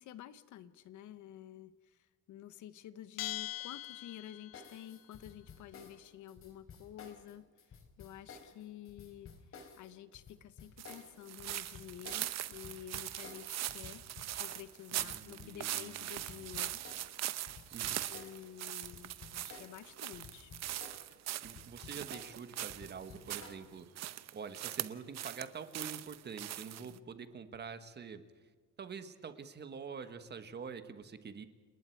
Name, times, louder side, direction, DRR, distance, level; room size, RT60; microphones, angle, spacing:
voice 1, 0.0-2.0 2.3-14.0 14.4-16.8 18.1-20.5 26.8-27.0, left 11 dB, 60° left, 14 dB, 1.0 m, -51 dB
Bell, 3.2-4.8, left 16 dB, 90° left, 0.9 m, -42 dB
sound 1, 4.5-19.9 20.1-23.6, left 5 dB, 40° left, 3.7 m, -54 dB
sound 2, 10.8-23.6 24.0-25.5 25.7-27.0, right 13 dB, 50° right, 0.9 m, -41 dB
voice 2, 14.9-16.5 17.7-18.1 21.4-28.5 28.8-31.5, right 6 dB, 30° right, 10 dB, 1.4 m, -47 dB
30.0 x 19.5 x 4.6 m, 1.5 s
cardioid pair, 150°, 33 cm